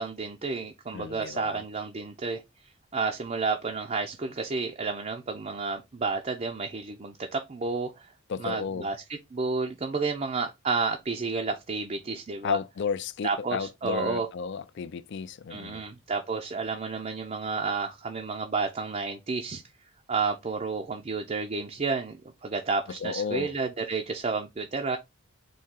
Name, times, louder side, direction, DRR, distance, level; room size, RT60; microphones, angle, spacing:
voice 1, 0.0-2.4 2.9-8.1 8.4-9.0 9.3-12.6 13.2-14.3 15.5-19.6 20.1-25.0, right 4 dB, 30° right, 0.4 m, -31 dB
voice 2, 0.9-1.6 8.3-8.9 12.4-15.8 23.0-23.5, left 6 dB, 55° left, 0.3 m, -33 dB
4.1 x 2.8 x 3.6 m
head